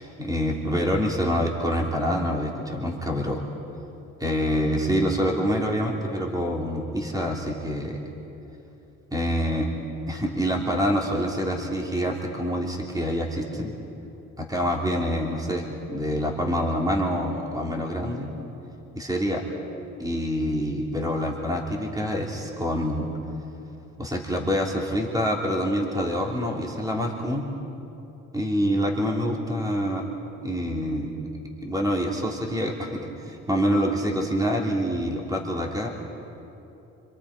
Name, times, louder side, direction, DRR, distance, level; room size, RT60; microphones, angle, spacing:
voice 1, 0.0-3.4 4.2-8.0 9.1-9.7 10.1-13.7 14.4-18.3 18.9-19.4 20.0-23.1 24.0-27.5 28.3-30.1 30.4-31.1 31.6-35.9, equal, 10° right, -1 dB, 3.0 m, -26 dB
27.0 x 26.5 x 5.0 m, 2.9 s
cardioid pair, 90°, 30 cm